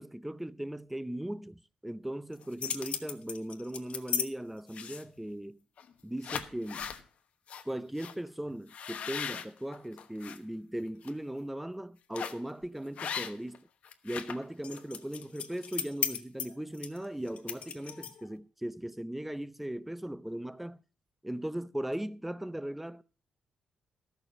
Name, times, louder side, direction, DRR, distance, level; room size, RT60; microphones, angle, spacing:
voice 1, 0.0-5.6 6.0-6.9 7.7-13.7 14.0-20.8 21.2-23.0, right 1 dB, 5° right, 0.6 m, -38 dB
sound 1, 2.3-4.3 4.7-5.2 5.8-5.9 6.2-7.0 7.5-7.6 8.0-8.1 8.7-10.4 10.8-11.1 12.1-12.5 13.0-13.6 13.8-18.3, left 8 dB, 70° left, 1.1 m, -37 dB
13.0 x 6.7 x 6.1 m
cardioid pair, 90°, 2 cm